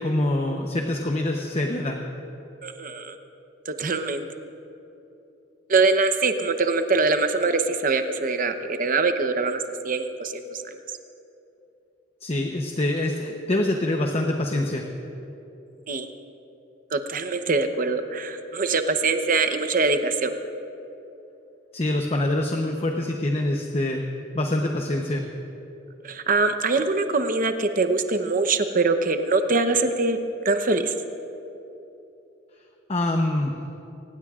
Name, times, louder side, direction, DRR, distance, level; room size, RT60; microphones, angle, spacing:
voice 1, 0.0-2.0 12.2-14.8 21.7-24.0 24.3-25.2 32.9-33.5, left 1 dB, 35° left, 2 dB, 0.9 m, -25 dB
voice 2, 2.6-3.2 3.7-4.3 5.7-10.6 15.9-16.1 16.9-20.4 26.0-30.2 30.4-30.9, right 3 dB, 50° right, 8 dB, 0.9 m, -23 dB
24.0 x 19.0 x 2.5 m, 3.0 s
head